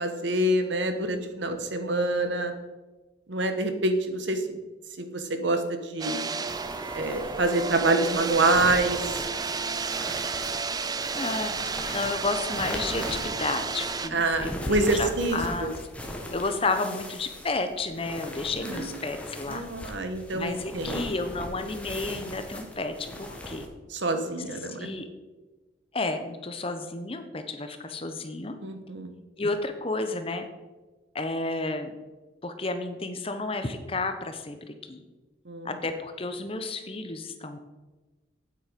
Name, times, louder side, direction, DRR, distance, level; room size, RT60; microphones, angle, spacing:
voice 1, 0.0-2.5 3.3-4.6 5.0-6.2 6.9-9.2 14.1-15.7 18.6-18.9 19.5-21.0 23.9-24.9 28.6-29.1 35.5-35.7, right 2 dB, 70° right, 7 dB, 1.2 m, -26 dB
sound 1, 6.0-14.1, right 4 dB, 20° right, 0.4 m, -32 dB
sound 2, 6.5-23.7, left 1 dB, 5° left, 1.1 m, -39 dB
voice 2, 11.1-15.7 16.3-19.6 20.3-23.7 24.5-25.1 25.9-28.5 29.4-30.5 31.1-31.9 32.4-35.0 35.6-37.6, left 3 dB, 30° left, 8 dB, 0.8 m, -32 dB
9.1 x 8.0 x 5.1 m, 1.2 s
head